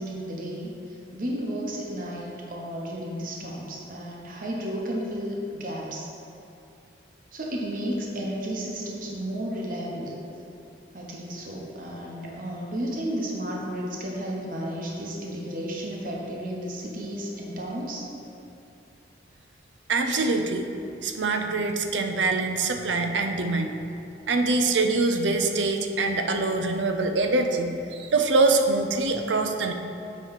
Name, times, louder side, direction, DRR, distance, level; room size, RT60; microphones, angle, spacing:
voice 1, 0.0-6.1 7.3-10.1 10.9-18.1, equal, 50° right, -2 dB, 0.9 m, -33 dB
voice 2, 19.9-20.7 21.0-23.7 24.3-29.7, right 3 dB, 80° right, 5 dB, 0.6 m, -24 dB
8.7 x 3.2 x 5.6 m, 2.6 s
head